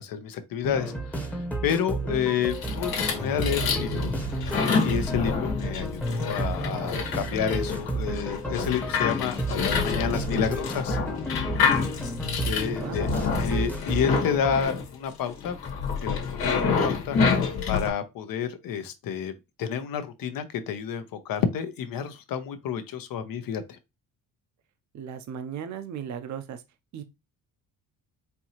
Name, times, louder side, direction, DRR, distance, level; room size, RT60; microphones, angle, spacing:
voice 1, 0.0-4.1 4.8-11.0 12.4-15.6 16.0-19.3 19.6-23.8, left 7 dB, 70° left, 0.8 m, -30 dB
sound 1, 0.6-14.6, right 2 dB, 5° left, 0.8 m, -32 dB
sound 2, 2.4-17.9, left 5 dB, 90° left, 1.4 m, -28 dB
voice 2, 24.9-26.6 26.9-27.0, right 8 dB, 55° right, 0.6 m, -36 dB
4.5 x 2.7 x 2.9 m
cardioid pair, 115°, 35 cm